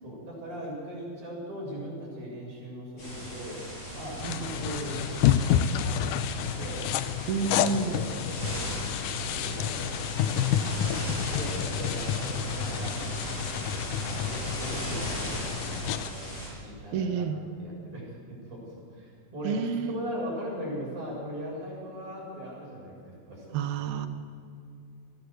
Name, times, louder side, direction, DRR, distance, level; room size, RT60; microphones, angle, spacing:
voice 1, 0.0-3.6 3.9-5.5 5.8-6.8 7.4-8.8 9.2-10.8 11.2-13.1 14.0-16.2 16.6-23.6, equal, 55° right, -4 dB, 8.7 m, -40 dB
sound 1, 3.0-16.5, equal, 40° left, 8.0 m, -37 dB
sound 2, 4.2-16.1, left 10 dB, 80° left, 2.0 m, -29 dB
voice 2, 4.2-4.6 7.3-8.0 16.9-17.4 19.4-20.0 23.5-24.1, right 6 dB, 80° right, 9 dB, 3.2 m, -29 dB
22.5 x 16.5 x 7.9 m, 2.3 s
omnidirectional pair, 4.4 m